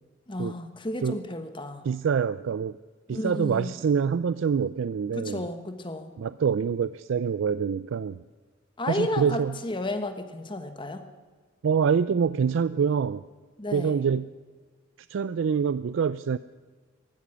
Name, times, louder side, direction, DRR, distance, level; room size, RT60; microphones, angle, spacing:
voice 1, 0.3-1.9 3.1-3.8 5.1-6.1 8.8-11.1 13.6-14.0, left 1 dB, 25° left, 8 dB, 1.2 m, -33 dB
voice 2, 1.9-2.8 3.1-5.4 6.2-8.2 8.9-9.6 11.6-13.2 13.7-14.3 15.1-16.4, right 6 dB, 75° right, 15 dB, 0.4 m, -25 dB
15.0 x 12.5 x 6.2 m, 1.4 s
head